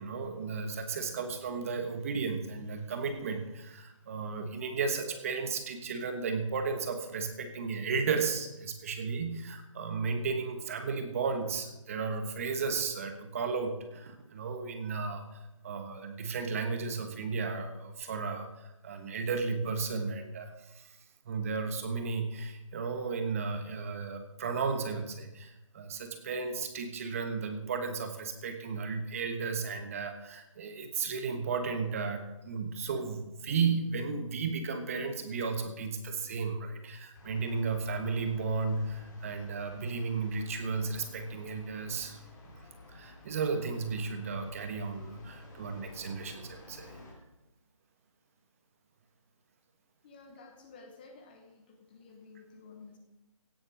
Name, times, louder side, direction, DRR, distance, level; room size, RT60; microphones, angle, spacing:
voice 1, 0.0-15.2 15.6-21.0 21.2-42.2 42.9-46.9, right 4 dB, 25° right, 6 dB, 1.4 m, -34 dB
sound 1, 37.1-47.1, left 2 dB, 35° left, 4.2 m, -51 dB
voice 2, 50.0-53.0, left 4 dB, 15° left, 4 dB, 1.0 m, -53 dB
17.0 x 7.9 x 6.3 m, 0.94 s
figure-of-eight pair, 165°, 17 cm